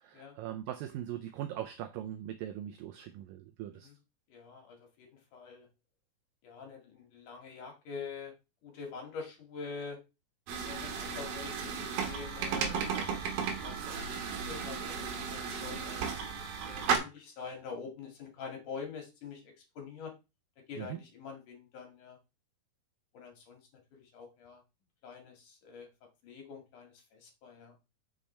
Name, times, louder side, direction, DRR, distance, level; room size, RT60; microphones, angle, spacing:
voice 1, 0.0-3.9 20.8-21.0, right 11 dB, 85° right, 2.0 m, -40 dB
voice 2, 4.3-5.7 6.4-8.3 8.6-10.0 10.6-14.2 14.5-20.1 20.7-22.2 23.1-23.6 23.9-24.6 25.0-25.9 26.2-27.7, left 5 dB, 55° left, 3.1 m, -46 dB
sound 1, 10.5-17.0, right 6 dB, 65° right, 3.0 m, -34 dB
8.8 x 6.6 x 3.3 m
omnidirectional pair, 4.6 m